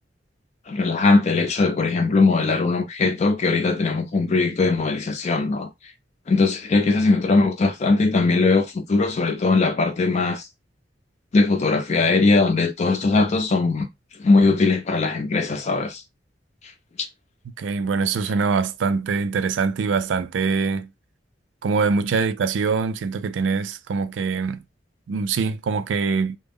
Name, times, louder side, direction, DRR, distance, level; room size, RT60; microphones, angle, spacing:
voice 1, 0.7-5.7 6.3-10.5 11.3-13.9 14.2-16.0, left 3 dB, 40° left, 0.4 m, -20 dB
voice 2, 17.6-20.9 21.6-24.6 25.1-26.4, right 5 dB, 85° right, 0.3 m, -23 dB
2.2 x 2.0 x 3.4 m
head